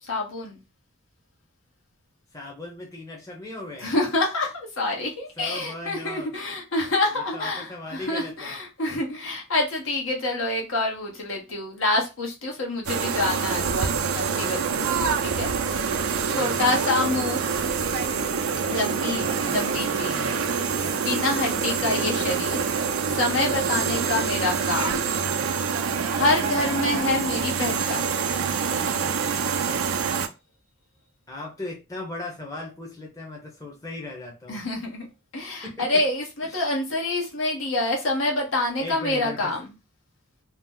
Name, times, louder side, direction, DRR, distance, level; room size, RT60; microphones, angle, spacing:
voice 1, 0.0-0.6 3.8-14.8 15.2-15.5 15.9-17.4 18.7-20.2 20.7-25.0 26.1-28.2 34.5-35.1 35.3-39.7, left 2 dB, 70° left, 1.0 m, -27 dB
voice 2, 2.3-3.9 5.4-6.3 7.1-8.5 16.0-16.6 19.1-19.5 21.7-21.9 31.3-34.6 35.6-35.9 36.5-36.7 38.8-39.5, left 2 dB, 15° left, 0.7 m, -38 dB
sound 1, 12.9-30.3, right 6 dB, 80° right, 0.4 m, -26 dB
2.9 x 2.0 x 3.5 m
head